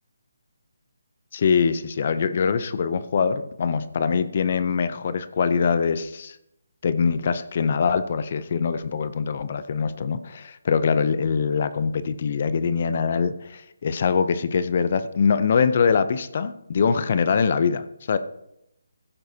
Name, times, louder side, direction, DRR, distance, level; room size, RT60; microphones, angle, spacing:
voice 1, 1.3-6.4 6.8-18.2, left 6 dB, 45° left, 13 dB, 0.6 m, -23 dB
15.0 x 8.7 x 2.8 m, 0.83 s
hypercardioid pair, 160°, 0 cm